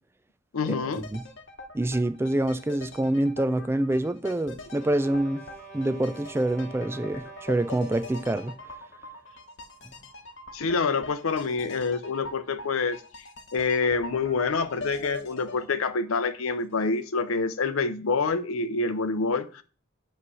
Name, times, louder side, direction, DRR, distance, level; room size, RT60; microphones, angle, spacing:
voice 1, 0.5-1.0 10.5-13.0 13.5-19.6, left 4 dB, 85° left, 0.6 m, -27 dB
sound 1, 0.9-16.9 17.1-17.2, left 2 dB, 60° left, 1.0 m, -43 dB
voice 2, 1.7-5.4 5.7-8.6, right 1 dB, 10° right, 0.3 m, -26 dB
sound 2, 4.6-8.8, right 4 dB, 45° right, 1.4 m, -46 dB
8.4 x 3.2 x 6.1 m
head